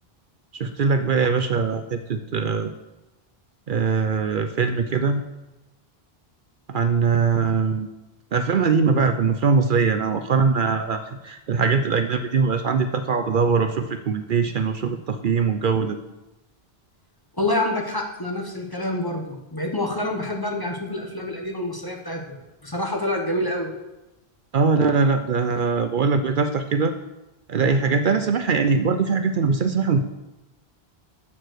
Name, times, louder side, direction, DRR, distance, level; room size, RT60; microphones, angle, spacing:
voice 1, 0.6-2.7 3.7-5.2 6.7-7.9 8.3-16.0 24.5-26.9 27.5-30.0, right 5 dB, 60° right, 8 dB, 0.7 m, -21 dB
voice 2, 17.4-22.4 22.6-23.7, left 1 dB, 20° left, 2 dB, 1.2 m, -27 dB
12.5 x 4.6 x 6.5 m, 0.99 s
omnidirectional pair, 1.0 m